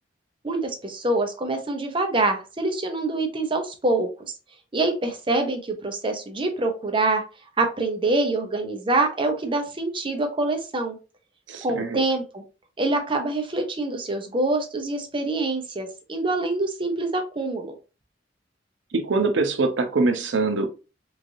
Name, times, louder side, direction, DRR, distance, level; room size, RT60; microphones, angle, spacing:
voice 1, 0.4-4.3 4.7-7.2 7.6-11.0 11.6-12.4 12.8-17.7, right 2 dB, 30° right, 4 dB, 0.6 m, -25 dB
voice 2, 11.5-12.0 18.9-20.7, right 3 dB, 80° right, 6 dB, 0.6 m, -23 dB
3.1 x 2.4 x 2.6 m, 0.31 s
head